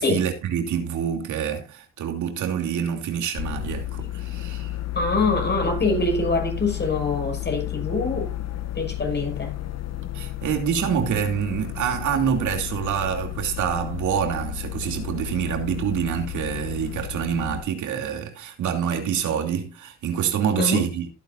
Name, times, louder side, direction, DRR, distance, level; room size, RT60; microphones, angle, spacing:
voice 1, 0.0-4.7 10.1-21.1, right 8 dB, 75° right, 2.8 m, -26 dB
sound 1, 3.4-17.6, left 14 dB, 55° left, 1.4 m, -32 dB
voice 2, 4.9-8.3 8.7-9.5 20.6-20.8, left 3 dB, 35° left, 6.1 m, -24 dB
15.5 x 9.2 x 2.6 m
cardioid pair, 90°, 30 cm